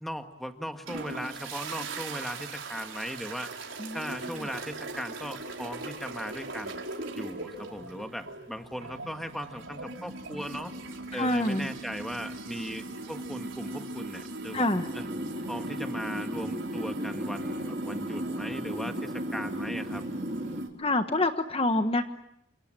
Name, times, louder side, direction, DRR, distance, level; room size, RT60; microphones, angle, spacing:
voice 1, 0.0-3.5 3.9-6.8 7.1-10.7 11.1-14.7 14.9-15.0 15.5-20.0, equal, ahead, 6 dB, 1.7 m, -38 dB
sound 1, 0.9-20.7, right 2 dB, 75° right, 4.7 m, -39 dB
voice 2, 3.8-4.5 11.1-11.7 14.5-14.9 20.8-22.0, left 2 dB, 30° left, 7 dB, 1.3 m, -27 dB
sound 2, 14.7-20.6, equal, 40° right, 2.6 m, -36 dB
29.0 x 27.0 x 7.6 m, 0.77 s
head